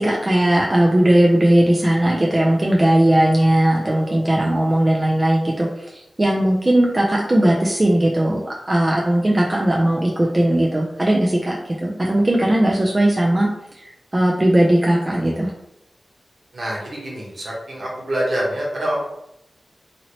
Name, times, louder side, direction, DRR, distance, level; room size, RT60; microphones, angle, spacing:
voice 1, 0.0-5.7 6.2-13.5 13.8-15.5, right 1 dB, 25° right, -2 dB, 0.4 m, -18 dB
voice 2, 16.5-19.0, right 1 dB, 60° right, -4 dB, 1.1 m, -25 dB
2.8 x 2.7 x 2.9 m, 0.83 s
wide cardioid pair, 110°, 0 cm